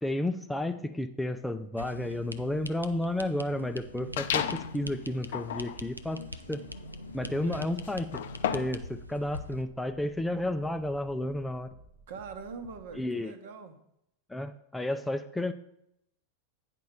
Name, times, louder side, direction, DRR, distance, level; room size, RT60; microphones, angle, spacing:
voice 1, 0.0-6.2 6.5-6.6 7.1-8.2 8.5-11.7 12.9-13.3 14.3-15.5, left 1 dB, 5° left, 8 dB, 0.4 m, -32 dB
sound 1, 1.8-9.6, left 1 dB, 90° right, 0.4 m, -43 dB
sound 2, 4.2-4.8 5.2-8.9, left 9 dB, 60° left, 0.5 m, -34 dB
sound 3, 5.7-13.1, right 3 dB, 35° right, 0.7 m, -56 dB
voice 2, 7.2-7.7 12.1-13.8, right 5 dB, 55° right, 8 dB, 1.0 m, -43 dB
9.3 x 4.6 x 5.4 m, 0.77 s
figure-of-eight pair, 90°, 0 cm